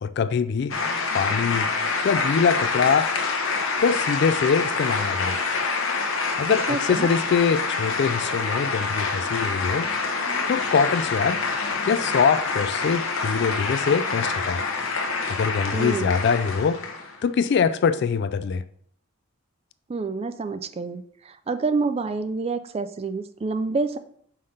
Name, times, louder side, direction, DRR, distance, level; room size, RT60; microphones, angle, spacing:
voice 1, 0.0-0.7 1.1-1.7 2.0-3.1 3.8-5.4 6.4-9.9 10.5-11.4 11.9-14.6 15.3-16.8 17.2-18.6, left 6 dB, 55° left, 0.3 m, -23 dB
sound 1, 0.7-17.2, left 4 dB, 70° left, 0.8 m, -26 dB
voice 2, 6.5-7.1 15.7-16.1 19.9-24.0, right 4 dB, 30° right, 0.3 m, -28 dB
5.6 x 3.3 x 5.5 m
head